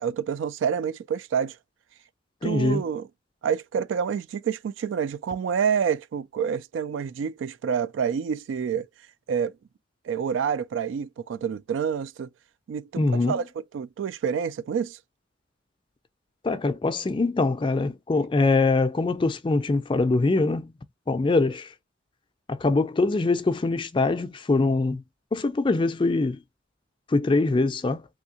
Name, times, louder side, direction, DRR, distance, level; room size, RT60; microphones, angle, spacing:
voice 1, 0.0-1.6 2.4-3.1 3.4-8.9 9.3-9.5 10.0-12.3 12.7-13.4 13.7-15.0, right 7 dB, 85° right, 0.3 m, -28 dB
voice 2, 2.4-2.8 13.0-13.4 16.4-20.7 21.1-21.7 22.5-25.0 25.3-26.4 27.1-28.0, left 3 dB, 25° left, 0.4 m, -23 dB
3.4 x 2.7 x 2.7 m
head